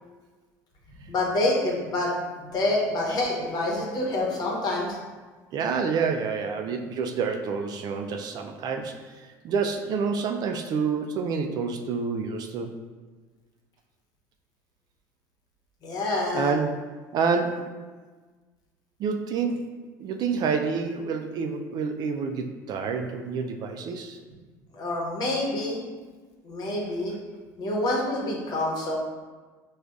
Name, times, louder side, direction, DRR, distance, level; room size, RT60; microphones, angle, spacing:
voice 1, 1.1-2.1 2.4-5.0 15.8-16.5 24.7-25.8 26.4-27.1 27.6-29.0, left 2 dB, 50° left, -2 dB, 1.0 m, -27 dB
voice 2, 5.5-12.7 16.3-16.7 17.1-17.8 19.0-19.7 20.0-24.2, right 5 dB, 50° right, 4 dB, 0.3 m, -28 dB
5.0 x 2.4 x 2.3 m, 1.4 s
supercardioid pair, 85°, 9 cm